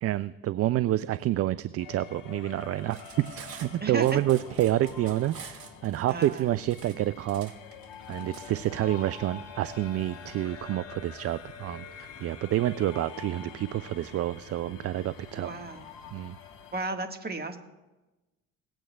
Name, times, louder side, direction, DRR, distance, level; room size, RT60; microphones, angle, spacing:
voice 1, 0.0-3.0 3.4-7.5 8.1-15.5 16.1-16.4, right 13 dB, 40° right, 15 dB, 0.4 m, -28 dB
sound 1, 1.8-16.9, left 7 dB, 60° left, 1.2 m, -47 dB
Cutlery silverware, 2.8-8.4, right 6 dB, 60° right, 2.5 m, -48 dB
voice 2, 3.8-4.2 6.1-6.5 15.3-15.9 16.7-17.6, right 3 dB, 25° right, 5 dB, 1.6 m, -34 dB
sound 2, 8.7-16.3, left 5 dB, 40° left, 1.2 m, -48 dB
18.5 x 8.9 x 2.3 m, 1.1 s
hypercardioid pair, 55°, 39 cm